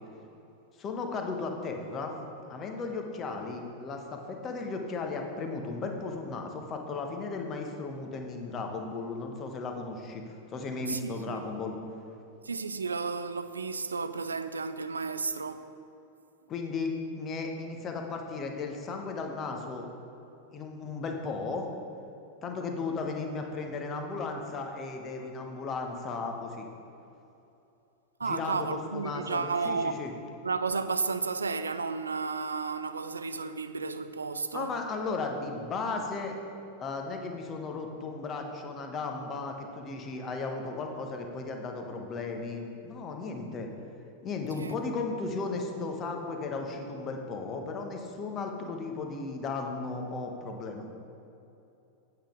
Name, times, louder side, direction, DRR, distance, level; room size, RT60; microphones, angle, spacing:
voice 1, 0.8-2.2 2.5-11.7 16.5-19.9 20.5-21.7 22.4-26.7 28.2-30.1 34.5-36.4 36.8-43.7 44.2-50.9, left 3 dB, 30° left, 1.1 m, -35 dB
voice 2, 10.9-11.5 12.4-15.7 28.2-30.0 30.4-34.7 44.6-44.8, right 4 dB, 75° right, 0.3 m, -32 dB
8.6 x 7.7 x 3.8 m
figure-of-eight pair, 90°, 0 cm